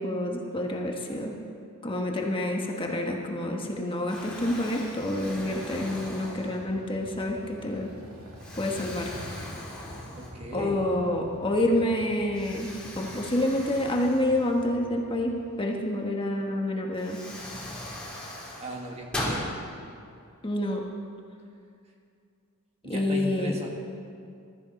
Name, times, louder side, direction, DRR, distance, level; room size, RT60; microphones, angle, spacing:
voice 1, 0.0-1.3 1.8-7.9 8.6-9.1 10.5-17.2 20.4-20.8 22.8-23.6, left 1 dB, 25° left, 0 dB, 1.3 m, -28 dB
Explosion, 3.5-3.7 4.1-6.9 7.5-7.7 8.4-10.6 11.0-11.1 12.3-15.0 16.4-16.5 16.9-19.4, left 1 dB, 5° left, 3.3 m, -39 dB
sound 1, 6.1-15.6, equal, 80° right, 2.8 m, -46 dB
voice 2, 10.2-10.9 18.5-19.6 22.8-23.7, right 1 dB, 30° right, 0 dB, 1.7 m, -37 dB
20.5 x 13.5 x 4.2 m, 2.4 s
head